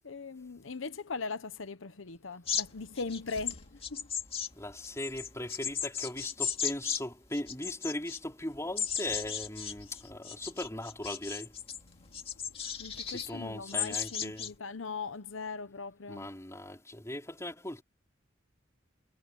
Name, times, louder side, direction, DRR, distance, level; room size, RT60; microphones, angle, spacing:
voice 1, 0.0-4.1 11.9-12.2 12.6-16.3, left 4 dB, 85° left, 0.9 m, -40 dB
sound 1, 2.5-7.0 7.3-8.2 8.8-11.8 12.1-13.3 13.7-14.5, left 8 dB, 30° left, 2.2 m, -35 dB
voice 2, 4.6-11.5 13.1-14.5 16.1-17.8, left 1 dB, 15° left, 4.1 m, -39 dB
head